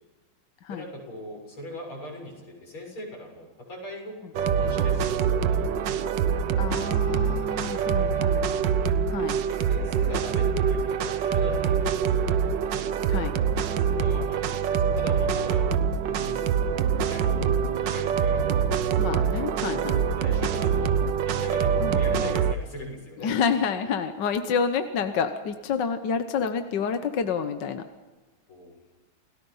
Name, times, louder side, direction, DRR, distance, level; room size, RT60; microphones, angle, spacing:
voice 1, 0.7-5.2 5.5-5.8 7.3-8.2 9.4-11.8 12.3-12.5 13.6-15.7 16.0-16.8 17.1-17.4 17.8-18.9 19.6-19.8 20.2-20.9 21.2-23.3 28.5-28.7, left 1 dB, 80° left, 0 dB, 7.8 m, -40 dB
sound 1, 4.3-22.5, right 7 dB, 65° right, 1.4 m, -25 dB
voice 2, 6.6-8.4 9.1-9.4 13.1-13.3 19.0-20.0 21.8-22.3 23.2-27.8, left 6 dB, 60° left, 8 dB, 1.6 m, -28 dB
28.5 x 17.5 x 5.6 m, 1.3 s
omnidirectional pair, 2.3 m